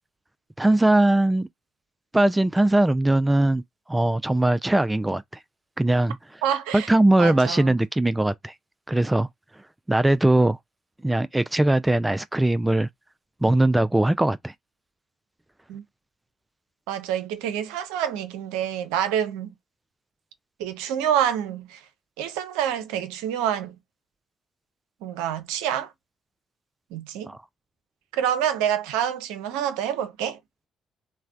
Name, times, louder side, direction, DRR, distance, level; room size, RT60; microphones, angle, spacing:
voice 1, 0.6-1.5 2.1-3.6 3.9-5.2 5.8-6.2 6.7-8.5 8.9-9.3 9.9-10.6 11.0-12.9 13.4-14.5 27.3-27.4, right 1 dB, 15° right, 0.3 m, -20 dB
voice 2, 6.4-6.9 7.2-7.8 15.7-15.8 16.9-19.5 20.6-21.8 22.2-23.8 25.0-25.9 26.9-27.3 28.1-30.4, right 9 dB, 75° right, 0.5 m, -27 dB
3.1 x 2.1 x 2.5 m
hypercardioid pair, 45°, 0 cm